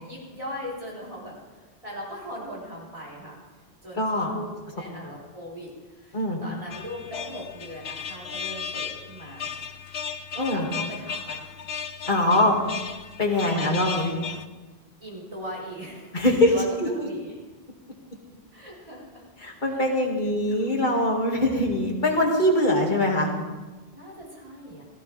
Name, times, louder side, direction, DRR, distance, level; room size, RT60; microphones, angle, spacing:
voice 1, 0.0-3.4 3.8-9.5 10.3-11.4 12.1-12.5 13.4-14.2 15.0-17.4 18.5-19.2 19.7-20.7 23.9-24.8, equal, 30° right, -6 dB, 4.3 m, -39 dB
voice 2, 4.0-4.3 6.1-6.4 10.4-10.7 12.1-12.6 13.2-14.1 16.1-16.5 16.8-16.9 19.4-23.3, left 1 dB, 50° left, 0 dB, 2.3 m, -22 dB
sound 1, 6.7-14.4, left 7 dB, 85° left, 1.0 m, -35 dB
17.0 x 15.5 x 3.4 m, 1.2 s
omnidirectional pair, 1.1 m